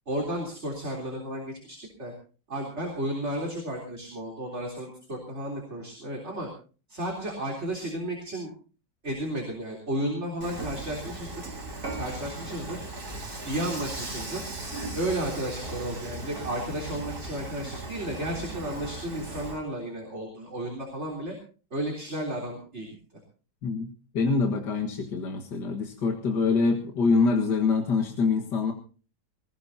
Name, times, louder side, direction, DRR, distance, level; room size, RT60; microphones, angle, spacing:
voice 1, 0.1-2.1 2.5-6.5 6.9-8.5 9.0-11.4 11.9-12.8 13.4-14.4 14.9-21.4 21.7-22.9, right 1 dB, 40° right, 0 dB, 3.9 m, -33 dB
Dishes pots and pans / Frying (food), 10.4-19.6, right 2 dB, 60° right, 4.4 m, -37 dB
voice 2, 24.1-28.7, left 4 dB, 75° left, 2 dB, 2.2 m, -25 dB
20.5 x 19.5 x 2.8 m, 0.38 s
omnidirectional pair, 1.8 m